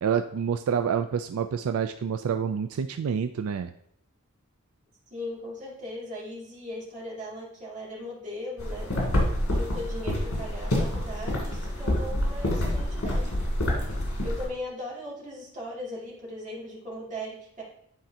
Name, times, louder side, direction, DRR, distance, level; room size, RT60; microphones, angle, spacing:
voice 1, 0.0-3.7, right 7 dB, 75° right, 8 dB, 0.3 m, -28 dB
voice 2, 5.1-8.9 9.5-13.4 14.2-17.6, left 1 dB, 35° right, -6 dB, 2.4 m, -38 dB
sound 1, 8.6-14.5, left 1 dB, 80° left, 2.5 m, -27 dB
10.0 x 4.4 x 2.8 m, 0.73 s
head